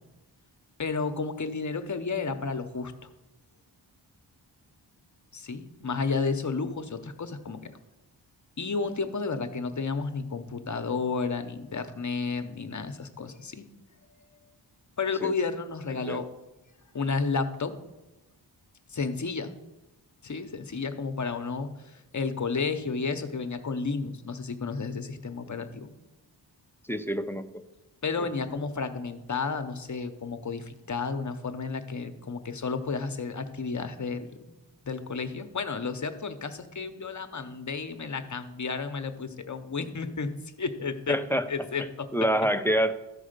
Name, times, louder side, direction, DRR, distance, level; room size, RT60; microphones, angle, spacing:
voice 1, 0.8-3.1 5.3-7.7 8.6-13.7 15.0-16.3 16.9-17.7 18.9-19.5 20.2-25.9 28.0-34.5 34.8-41.2 41.5-42.1, left 4 dB, 40° left, 9 dB, 0.9 m, -32 dB
voice 2, 26.9-27.5 41.1-41.5 42.1-42.9, equal, 5° left, 8 dB, 0.5 m, -26 dB
13.5 x 4.9 x 6.6 m, 1.0 s
wide cardioid pair, 135°, 43 cm